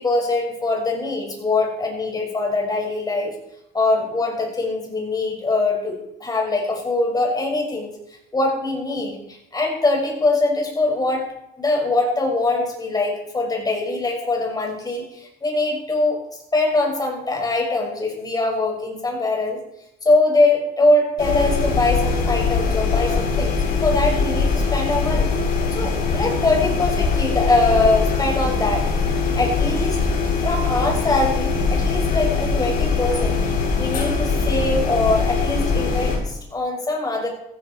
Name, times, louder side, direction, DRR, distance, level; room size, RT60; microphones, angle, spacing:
voice 1, 0.0-3.3 3.7-7.9 8.3-11.2 11.6-16.2 16.5-19.6 20.0-25.4 25.7-28.9 29.3-30.0 30.4-37.3, left 2 dB, 20° left, 0 dB, 6.3 m, -22 dB
sound 1, 21.2-36.2, left 4 dB, 60° left, 7.7 m, -22 dB
16.0 x 15.5 x 4.7 m, 0.81 s
cardioid pair, 110°, 17 cm